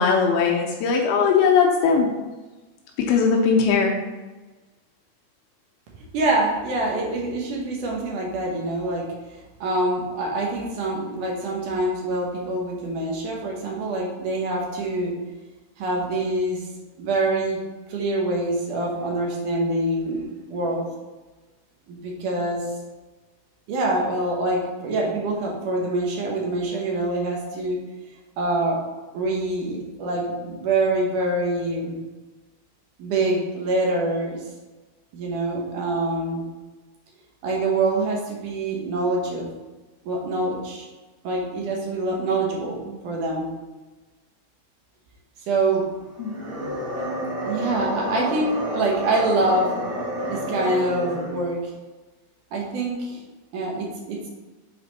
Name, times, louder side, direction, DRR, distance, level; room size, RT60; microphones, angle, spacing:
voice 1, 0.0-2.1 3.0-4.0 46.2-46.3, left 5 dB, 80° left, 1 dB, 2.5 m, -19 dB
voice 2, 6.1-9.1 9.3-15.1 15.8-16.7 17.0-17.6 17.9-20.8 21.9-22.7 23.7-27.8 28.4-28.9 29.1-32.0 33.0-34.4 35.1-36.4 37.4-39.5 40.0-40.9 41.2-43.5 45.5-45.9 47.4-49.7 50.3-51.6 52.5-53.2 53.5-54.3, right 2 dB, 65° right, -1 dB, 2.3 m, -25 dB
sound 1, 46.2-51.5, right 1 dB, 35° right, 2.7 m, -30 dB
8.0 x 4.2 x 4.0 m, 1.2 s
omnidirectional pair, 4.6 m